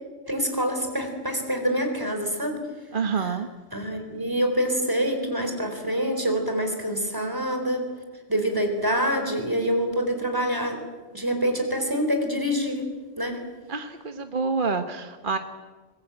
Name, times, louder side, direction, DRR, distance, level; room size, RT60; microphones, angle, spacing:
voice 1, 0.3-2.6 3.7-7.9 8.3-10.8 11.1-12.9 13.2-13.4, equal, 15° right, 5 dB, 4.0 m, -26 dB
voice 2, 2.9-3.5 13.7-15.4, right 4 dB, 45° right, 7 dB, 1.3 m, -27 dB
24.0 x 21.0 x 8.9 m, 1.4 s
omnidirectional pair, 1.3 m